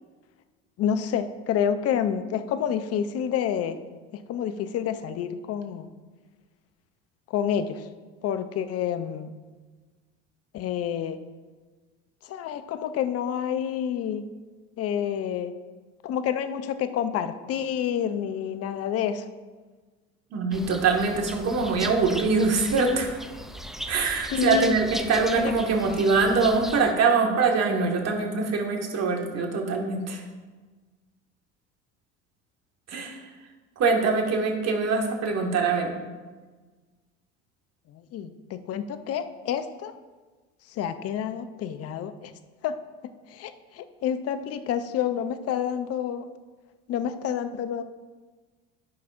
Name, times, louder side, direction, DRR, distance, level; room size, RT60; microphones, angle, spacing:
voice 1, 0.8-3.8 4.1-5.9 7.3-7.9 8.2-9.3 10.5-11.2 12.2-14.2 14.8-15.5 16.0-19.2 24.3-24.8 25.3-25.5 37.9-39.9 40.7-42.3 42.6-42.8 43.3-46.3 46.9-47.8, left 8 dB, 45° left, 10 dB, 0.7 m, -28 dB
voice 2, 20.3-23.2 23.9-30.2 32.9-33.2 33.8-35.9, right 4 dB, 45° right, 1 dB, 1.8 m, -23 dB
sound 1, 20.5-26.9, equal, ahead, 0.4 m, -38 dB
13.0 x 5.7 x 2.6 m, 1.3 s
hypercardioid pair, 75°, 35 cm